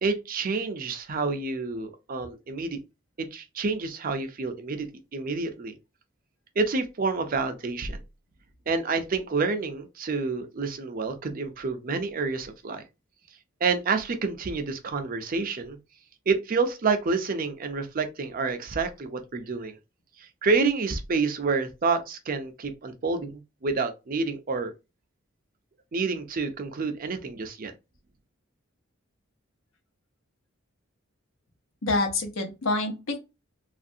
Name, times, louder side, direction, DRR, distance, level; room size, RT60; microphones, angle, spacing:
voice 1, 0.0-2.8 3.2-4.9 5.1-5.7 6.6-8.0 8.7-12.8 13.6-15.8 16.3-19.8 20.2-24.7 25.9-27.7, right 4 dB, 45° right, 0.5 m, -28 dB
voice 2, 31.8-33.2, left 2 dB, 75° left, 0.9 m, -27 dB
3.1 x 2.4 x 2.6 m
head